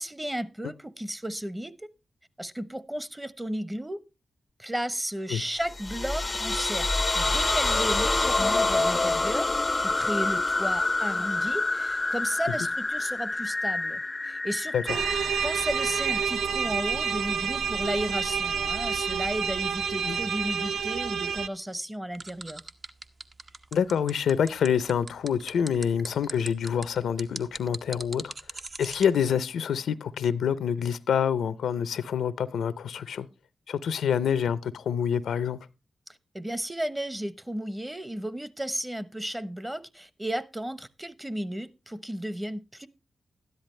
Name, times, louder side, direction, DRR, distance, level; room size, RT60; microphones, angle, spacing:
voice 1, 0.0-1.9 2.4-4.0 4.6-6.9 7.1-9.5 9.8-15.1 15.4-22.6 36.3-42.9, equal, 15° right, 0.9 m, -34 dB
sound 1, 5.6-16.2, left 2 dB, 35° left, 0.5 m, -27 dB
sound 2, 14.9-21.5, right 7 dB, 85° right, 0.5 m, -28 dB
sound 3, 22.1-29.1, right 3 dB, 50° right, 1.0 m, -39 dB
voice 2, 23.7-28.3 28.8-33.3 33.7-35.6, left 8 dB, 90° left, 0.5 m, -27 dB
12.5 x 10.5 x 3.2 m
cardioid pair, 50°, 0 cm